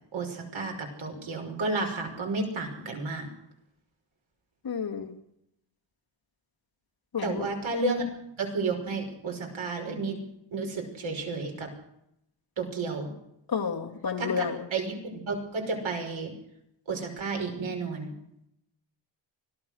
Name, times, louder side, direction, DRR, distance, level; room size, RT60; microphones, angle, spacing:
voice 1, 0.1-3.3 7.2-8.0 8.4-10.2 10.5-11.7 12.6-13.1 14.2-14.4 14.7-16.3 16.9-18.1, right 3 dB, 75° right, 3 dB, 5.8 m, -32 dB
voice 2, 4.6-5.1 7.1-7.4 13.5-14.6, left 6 dB, 50° left, 2 dB, 2.7 m, -30 dB
25.0 x 17.5 x 6.4 m, 0.79 s
wide cardioid pair, 180°, 47 cm